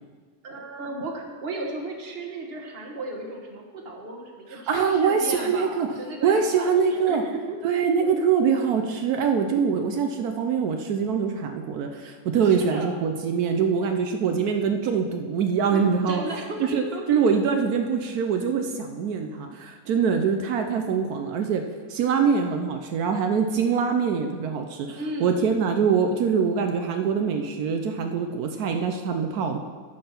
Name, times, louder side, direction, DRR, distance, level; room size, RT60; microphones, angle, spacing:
voice 1, 0.4-7.2 7.5-7.6 8.0-8.1 8.4-8.5 12.4-13.0 15.7-17.2 17.5-17.6 24.9-25.7, right 2 dB, 35° right, 1 dB, 1.2 m, -35 dB
voice 2, 4.5-5.9 6.2-7.2 7.6-16.2 16.6-21.6 21.9-29.6, right 6 dB, 85° right, 5 dB, 0.8 m, -24 dB
13.5 x 5.5 x 5.8 m, 1.5 s
omnidirectional pair, 2.4 m